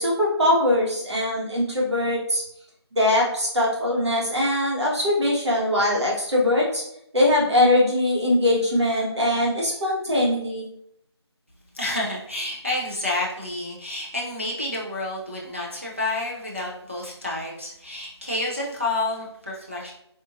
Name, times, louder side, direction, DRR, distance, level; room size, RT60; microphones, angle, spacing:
voice 1, 0.0-2.4 2.9-6.8 7.1-10.6, left 1 dB, 75° right, -4 dB, 1.4 m, -21 dB
voice 2, 11.7-19.9, left 2 dB, 30° right, -4 dB, 0.4 m, -29 dB
3.7 x 2.4 x 2.5 m, 0.75 s
figure-of-eight pair, 180°, 14 cm